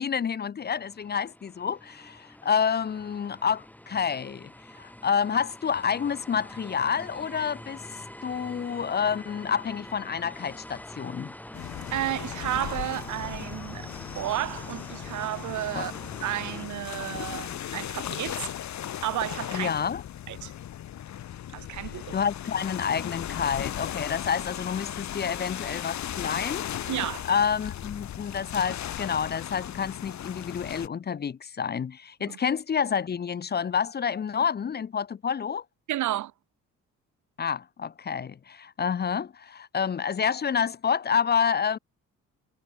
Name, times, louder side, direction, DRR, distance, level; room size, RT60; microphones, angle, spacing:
voice 1, 0.0-4.5 4.8-11.3 15.7-15.9 19.5-20.0 22.1-26.7 27.3-35.6 37.4-41.8, left 7 dB, 35° left, 0.7 m, -28 dB
sound 1, 0.6-16.7, left 1 dB, 5° left, 3.1 m, -45 dB
sound 2, 11.5-30.9, left 11 dB, 70° left, 3.0 m, -37 dB
voice 2, 11.9-13.9 14.1-15.9 16.2-18.5 19.0-19.7 20.3-20.5 21.5-22.2 26.9-27.3 32.3-32.4 35.9-36.3, right 14 dB, 75° right, 1.3 m, -32 dB
cardioid pair, 90°, 30 cm